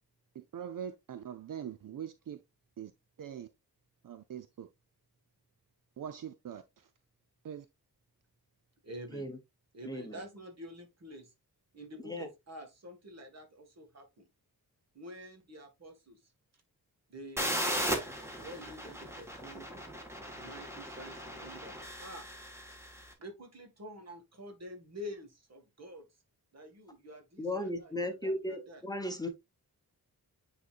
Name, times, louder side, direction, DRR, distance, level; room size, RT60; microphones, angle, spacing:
voice 1, 0.4-2.4 2.8-2.9 3.2-3.5 4.0-4.7 6.0-6.6 7.4-7.6, right 9 dB, 60° right, 0.6 m, -42 dB
voice 2, 8.8-9.3 9.7-11.3 11.7-14.3 14.9-16.2 17.1-17.7 18.4-19.7 20.3-22.3 23.2-26.0 26.5-28.8, equal, 45° right, 1.9 m, -48 dB
voice 3, 9.8-10.2 12.0-12.3 27.4-29.3, left 1 dB, 10° left, 1.0 m, -36 dB
sound 1, 17.4-23.0, equal, 5° right, 1.6 m, -37 dB
9.4 x 4.1 x 2.5 m
wide cardioid pair, 175°, 37 cm